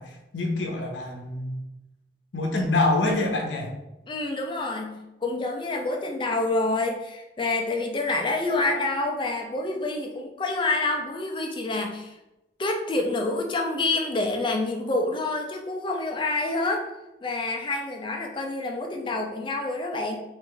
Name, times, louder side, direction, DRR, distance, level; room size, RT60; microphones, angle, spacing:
voice 1, 0.0-1.6 2.3-3.7, left 2 dB, 85° left, 2 dB, 0.7 m, -26 dB
voice 2, 4.1-12.2 12.6-16.9 17.2-20.2, left 2 dB, 25° left, 2 dB, 0.5 m, -27 dB
3.2 x 2.6 x 3.7 m, 0.95 s
head